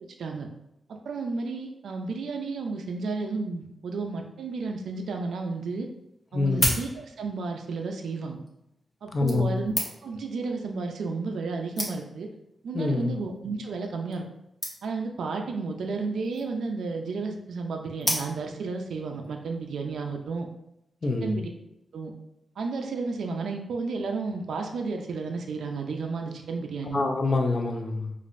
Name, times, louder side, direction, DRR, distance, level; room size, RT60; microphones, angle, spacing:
voice 1, 0.9-5.9 6.3-8.4 9.0-9.7 10.0-12.3 12.6-14.2 14.8-20.5 21.2-21.5 21.9-22.1 22.6-27.0, right 4 dB, 85° right, 3 dB, 0.4 m, -32 dB
sound 1, 5.5-5.6 6.3-7.4 8.3-8.5 9.3-10.2 11.1-11.2 11.4-11.5 11.8-12.3 13.0-13.2 13.5-13.6 13.8-13.9 14.1-14.3 14.6-15.1 16.1-16.6 18.0-18.7 19.2-19.3, left 1 dB, 10° left, 0.8 m, -31 dB
voice 2, 6.3-6.7 9.1-9.7 12.7-13.2 21.0-21.4 26.9-28.1, left 3 dB, 35° left, 3 dB, 0.5 m, -26 dB
5.1 x 2.5 x 2.5 m, 0.82 s
wide cardioid pair, 145°, 0 cm